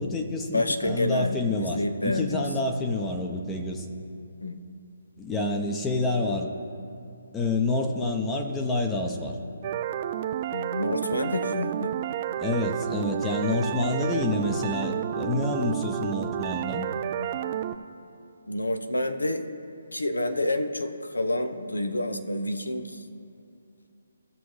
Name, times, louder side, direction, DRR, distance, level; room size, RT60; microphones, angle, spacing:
voice 1, 0.0-3.9 5.2-6.5 7.3-9.4 12.4-16.9, left 2 dB, 10° left, 2 dB, 0.8 m, -28 dB
voice 2, 0.5-2.5 4.4-4.6 10.5-11.9 18.5-19.4 19.9-23.0, left 1 dB, 85° left, 7 dB, 0.9 m, -28 dB
sound 1, 9.6-17.8, right 10 dB, 35° right, 0.4 m, -30 dB
16.5 x 6.9 x 3.2 m, 2.6 s
figure-of-eight pair, 145°, 0 cm